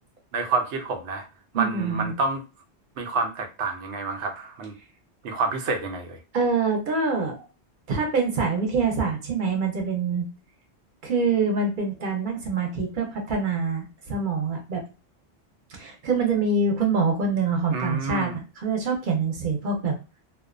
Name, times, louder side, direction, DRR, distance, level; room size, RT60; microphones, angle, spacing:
voice 1, 0.3-1.3 1.5-2.4 3.0-4.7 5.2-6.2 17.7-18.3, right 3 dB, 90° right, 4 dB, 0.9 m, -28 dB
voice 2, 1.5-2.1 6.3-7.4 7.9-10.3 11.0-14.8 15.7-19.9, right 4 dB, 50° right, 2 dB, 0.8 m, -25 dB
2.5 x 2.1 x 2.4 m, 0.30 s
omnidirectional pair, 1.1 m